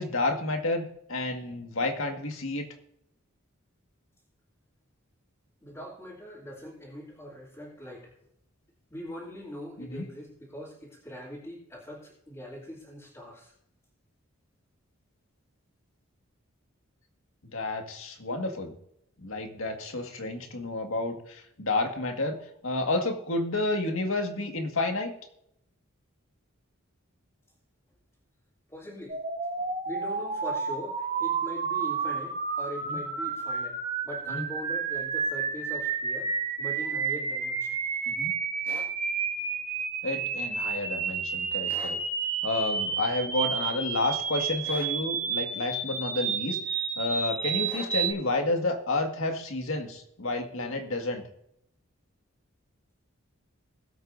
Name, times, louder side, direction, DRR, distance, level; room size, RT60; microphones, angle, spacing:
voice 1, 0.0-2.7 9.8-10.1 17.4-18.7 19.2-22.4 22.6-25.1 32.9-33.0 34.3-34.4 38.1-38.3 40.0-42.0 42.4-51.2, left 2 dB, 70° left, 4 dB, 1.9 m, -30 dB
voice 2, 5.6-8.1 8.9-13.5 28.7-29.2 29.8-33.8 34.0-36.3 36.6-37.8, equal, 15° left, -10 dB, 3.0 m, -42 dB
sound 1, 29.1-48.1, right 5 dB, 40° right, 3.4 m, -31 dB
sound 2, 38.6-38.9 41.7-42.0 44.6-45.0 47.6-48.0, right 1 dB, 10° right, 2.0 m, -45 dB
21.5 x 8.3 x 2.7 m, 0.75 s
head